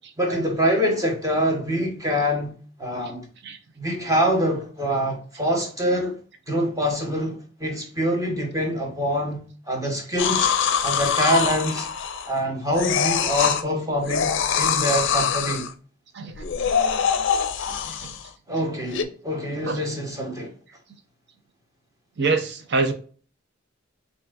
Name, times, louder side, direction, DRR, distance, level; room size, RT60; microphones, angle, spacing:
voice 1, 0.2-2.5 2.8-3.3 3.8-6.2 6.5-10.5 10.8-11.9 12.2-15.7 18.5-20.5, equal, 15° right, 1.2 m, -25 dB
sound 1, 10.2-12.4 12.7-13.6 14.0-15.7 16.3-18.3 18.9-19.0, left 7 dB, 65° left, 0.5 m, -24 dB
voice 2, 17.7-18.1 19.6-19.8 22.2-22.9, right 3 dB, 60° right, 0.7 m, -26 dB
5.6 x 2.7 x 2.5 m
head